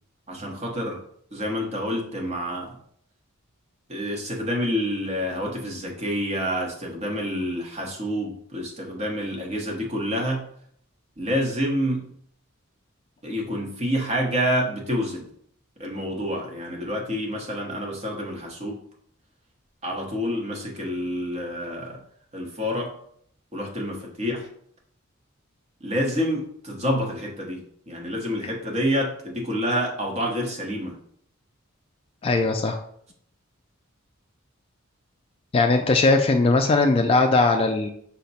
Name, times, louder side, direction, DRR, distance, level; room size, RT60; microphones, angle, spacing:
voice 1, 0.3-1.0 1.3-2.8 3.9-10.5 11.2-12.1 13.2-15.3 15.8-18.8 19.8-22.0 22.3-22.9 23.5-24.5 25.8-31.0, equal, 35° right, 0 dB, 1.1 m, -28 dB
voice 2, 32.2-32.8 35.5-37.9, left 3 dB, 25° left, 5 dB, 0.3 m, -19 dB
5.6 x 2.2 x 4.1 m, 0.65 s
head